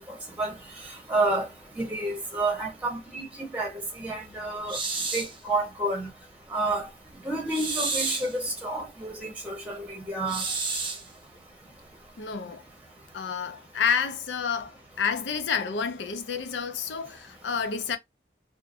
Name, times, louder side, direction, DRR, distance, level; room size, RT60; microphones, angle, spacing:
voice 1, 1.1-1.4 1.8-3.3 3.5-3.7 4.0-4.8 5.1-6.1 6.5-6.9 7.2-10.4, right 2 dB, 10° right, 0.9 m, -29 dB
sound 1, 4.7-5.4 7.5-8.3 10.3-11.1, right 3 dB, 30° right, 0.5 m, -30 dB
voice 2, 12.2-12.6 13.1-18.0, left 6 dB, 85° left, 0.5 m, -29 dB
2.7 x 2.1 x 2.5 m
head